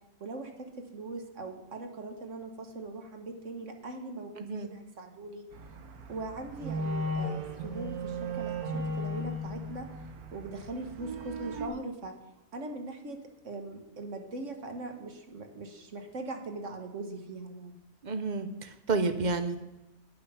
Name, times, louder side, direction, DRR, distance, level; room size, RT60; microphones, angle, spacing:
voice 1, 0.2-5.5 6.1-9.9 10.3-12.1 12.5-13.2 13.4-17.7, right 2 dB, 55° right, 5 dB, 1.4 m, -40 dB
voice 2, 4.4-4.7 18.0-19.6, right 3 dB, 40° right, 9 dB, 0.7 m, -30 dB
sound 1, 5.5-11.7, right 1 dB, 80° right, 1.5 m, -36 dB
9.9 x 7.7 x 5.7 m, 0.99 s
omnidirectional pair, 1.5 m